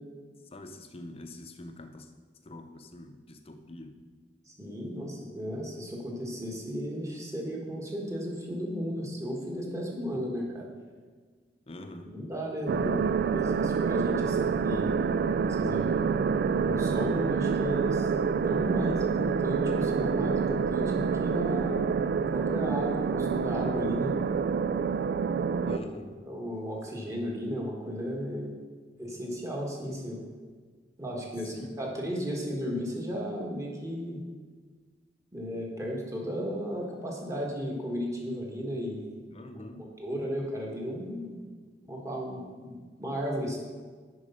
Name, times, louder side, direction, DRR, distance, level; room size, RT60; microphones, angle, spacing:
voice 1, 0.5-2.1 2.4-4.0 10.1-10.2 11.7-12.1 25.7-26.2 31.4-32.0 39.3-39.9, left 1 dB, 35° left, 6 dB, 0.7 m, -44 dB
voice 2, 4.5-10.6 12.0-15.0 15.5-16.0 16.5-18.1 18.4-24.1 25.6-25.8 26.2-28.5 29.0-30.2 31.0-34.2 35.3-39.1 39.7-41.4 41.9-43.6, equal, 20° right, -2 dB, 1.6 m, -34 dB
sound 1, 12.7-25.8, right 6 dB, 60° right, 0.3 m, -27 dB
10.0 x 4.7 x 5.5 m, 1.5 s
head